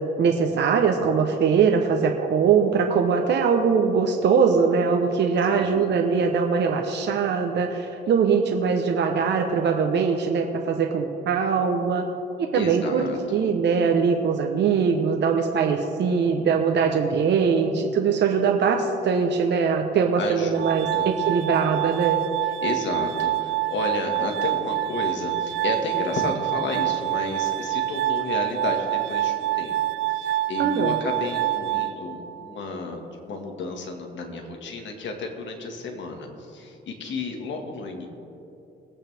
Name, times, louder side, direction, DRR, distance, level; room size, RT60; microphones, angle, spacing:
voice 1, 0.2-12.0 12.4-22.2 30.6-30.9, right 6 dB, 60° right, 3 dB, 1.0 m, -22 dB
voice 2, 5.5-5.9 12.5-13.5 18.1-18.2 20.2-21.1 22.4-29.8 30.1-38.1, left 3 dB, 65° left, 3 dB, 2.0 m, -32 dB
Glass, 20.6-32.6, right 15 dB, 75° right, 0.4 m, -27 dB
21.5 x 8.8 x 3.5 m, 2.8 s
cardioid pair, 90°, 20 cm